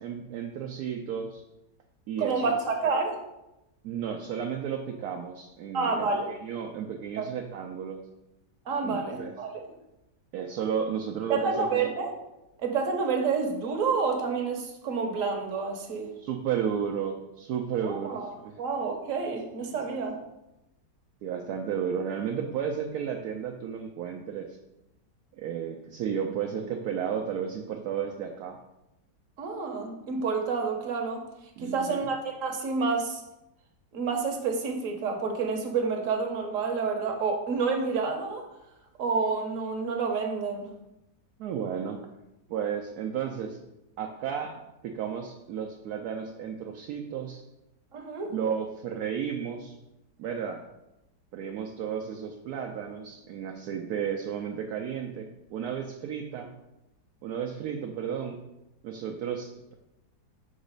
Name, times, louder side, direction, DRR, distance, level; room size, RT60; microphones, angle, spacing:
voice 1, 0.0-1.4 2.1-2.5 3.8-8.0 8.8-9.3 10.3-11.9 16.2-18.2 18.4-18.5 19.7-19.8 21.2-24.6 25.4-28.6 31.6-32.1 41.4-42.0 42.5-43.6 44.0-47.4 48.3-49.8 50.2-50.6 51.3-56.5 57.2-58.4 58.8-59.7, right 7 dB, 75° right, 2 dB, 1.0 m, -33 dB
voice 2, 2.2-3.2 5.7-6.3 7.2-7.3 8.7-9.6 11.3-12.2 12.6-16.1 17.8-20.2 29.4-31.3 31.6-33.2 33.9-38.5 39.0-40.7 47.9-48.4, right 4 dB, 55° right, 4 dB, 1.2 m, -29 dB
5.5 x 4.0 x 5.2 m, 0.92 s
omnidirectional pair, 1.8 m